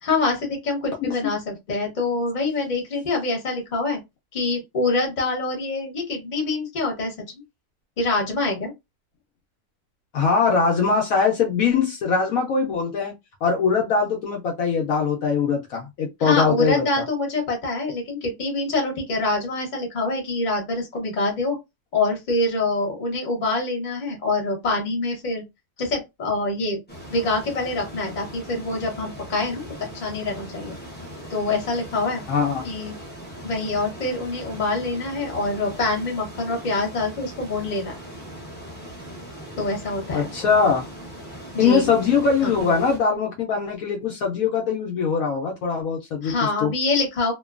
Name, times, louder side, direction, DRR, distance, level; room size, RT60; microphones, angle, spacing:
voice 1, 0.0-4.0 4.3-7.4 8.0-8.7 16.2-21.6 21.9-25.4 25.8-26.8 27.1-30.7 31.3-32.2 32.6-33.0 33.4-38.0 39.6-40.3 41.5-41.9 42.4-42.7 46.2-47.3, left 2 dB, 35° left, 1.0 m, -25 dB
voice 2, 10.1-13.1 13.4-17.0 32.3-32.7 40.1-40.8 41.6-46.7, left 5 dB, 70° left, 1.0 m, -22 dB
sound 1, 26.9-43.0, equal, 10° left, 0.6 m, -39 dB
2.8 x 2.2 x 2.3 m
omnidirectional pair, 1.6 m